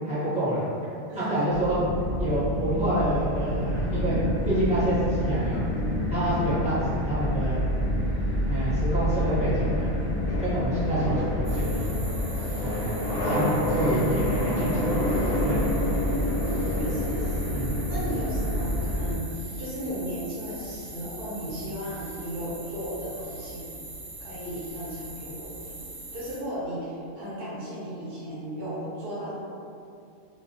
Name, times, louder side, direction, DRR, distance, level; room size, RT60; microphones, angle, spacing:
voice 1, 0.0-0.6 1.3-1.8 2.2-4.2 4.4-5.6 6.1-7.6 8.5-9.9 10.4-11.9 12.6-14.9 15.3-15.6 17.5-18.0, right 1 dB, 10° right, -12 dB, 0.5 m, -27 dB
voice 2, 1.1-1.4 16.8-17.6 17.9-23.7 24.2-25.8 26.1-29.4, equal, 55° right, -8 dB, 0.9 m, -35 dB
sound 1, 1.5-19.2, left 1 dB, 60° left, 0.7 m, -27 dB
sound 2, 11.4-26.4, right 2 dB, 90° right, 1.0 m, -42 dB
2.3 x 2.1 x 2.6 m, 2.5 s
omnidirectional pair, 1.2 m